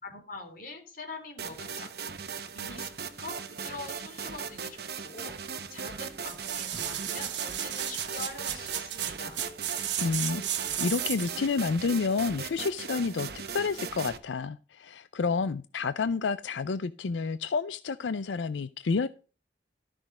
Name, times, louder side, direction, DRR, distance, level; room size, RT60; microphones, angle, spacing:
voice 1, 0.0-1.9 2.5-5.3 5.7-9.4, left 3 dB, 50° left, 3.6 m, -44 dB
sound 1, 1.4-14.2, right 6 dB, 60° right, 1.1 m, -39 dB
sound 2, 6.2-11.5 11.9-12.0, right 11 dB, 85° right, 1.4 m, -34 dB
voice 2, 10.0-10.4 10.8-19.1, left 4 dB, 90° left, 0.5 m, -29 dB
13.0 x 6.2 x 4.9 m
head